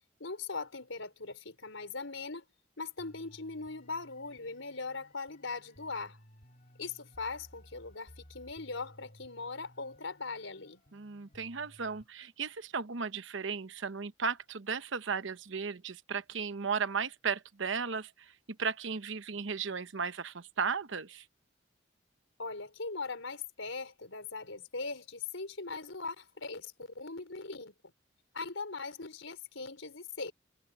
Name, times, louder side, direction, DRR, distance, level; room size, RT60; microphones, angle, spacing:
voice 1, 0.2-2.4 2.8-6.2 6.8-10.8 22.4-27.7 28.3-30.3, left 4 dB, 90° left, 4.8 m, -40 dB
sound 1, 3.0-12.1, equal, 40° left, 3.8 m, -58 dB
voice 2, 10.9-18.3 18.6-21.2, right 5 dB, 75° right, 0.9 m, -35 dB
head